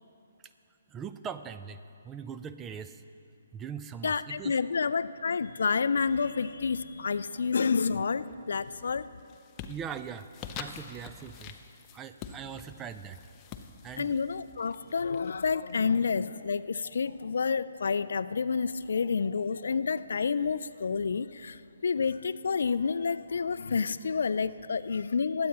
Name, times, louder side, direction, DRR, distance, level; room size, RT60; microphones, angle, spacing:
voice 1, 0.9-3.0 3.5-4.5 9.7-10.3 10.5-11.6 11.9-13.2 13.8-14.2, right 7 dB, 15° right, 11 dB, 0.4 m, -41 dB
voice 2, 4.0-9.1 14.0-25.5, left 5 dB, 65° left, 15 dB, 0.3 m, -29 dB
sound 1, 8.2-8.7 9.1-15.7, left 7 dB, 25° left, 0.6 m, -46 dB
22.0 x 8.5 x 3.0 m, 2.5 s
figure-of-eight pair, 135°, 0 cm